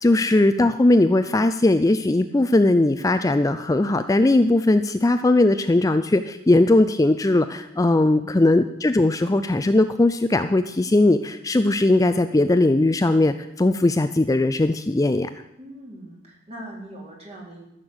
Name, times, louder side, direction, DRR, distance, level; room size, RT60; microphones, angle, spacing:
voice 1, 0.0-15.3, left 2 dB, 20° left, 9 dB, 0.4 m, -19 dB
voice 2, 15.6-17.7, right 1 dB, 35° right, -2 dB, 3.8 m, -41 dB
14.5 x 6.6 x 8.0 m, 0.85 s
head